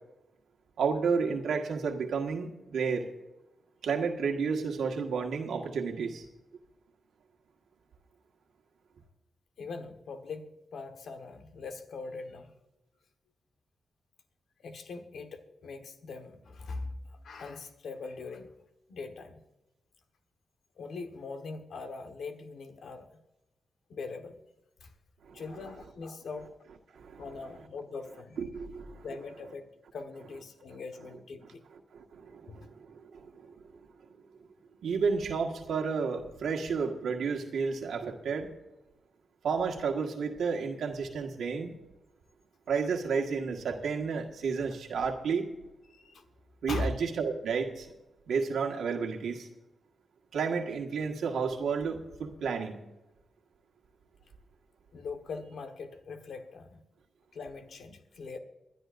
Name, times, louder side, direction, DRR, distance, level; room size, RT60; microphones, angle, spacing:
voice 1, 0.8-3.1 3.8-6.2 25.2-25.4 26.9-27.2 28.4-29.1 31.9-33.6 34.8-38.5 39.4-41.7 42.7-45.5 46.6-47.9 48.3-49.5 50.3-52.8, right 5 dB, 90° right, 2 dB, 1.5 m, -31 dB
voice 2, 9.6-12.5 14.6-18.5 18.9-19.4 20.8-23.1 23.9-24.4 24.8-24.9 25.3-26.5 27.2-28.4 29.0-29.7 29.9-31.6 32.5-32.6 45.9-46.3 46.7-46.9 54.9-56.8 57.3-58.4, left 3 dB, 80° left, 7 dB, 1.3 m, -41 dB
23.5 x 11.0 x 2.6 m, 0.97 s
cardioid pair, 75°, 0 cm